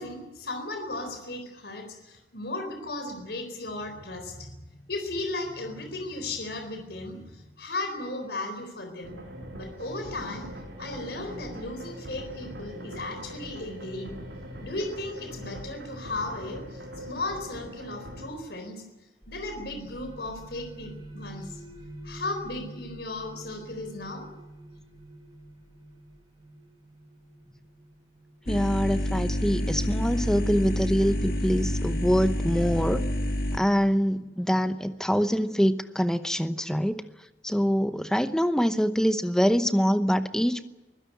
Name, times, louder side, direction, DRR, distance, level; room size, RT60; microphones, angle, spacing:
voice 1, 0.0-9.2 9.5-10.5 10.8-14.2 14.6-18.8 19.3-21.6 22.0-24.3, left 2 dB, 70° left, 6 dB, 4.2 m, -36 dB
sound 1, 9.0-18.3, equal, 85° right, 7.3 m, -41 dB
sound 2, 19.2-30.6, right 1 dB, 25° right, 5.0 m, -47 dB
sound 3, 28.5-33.6, left 1 dB, 55° left, 1.8 m, -28 dB
voice 2, 28.5-33.0 33.5-37.0 37.4-40.6, equal, 5° left, 10 dB, 0.8 m, -24 dB
23.0 x 16.5 x 9.2 m, 1.1 s
head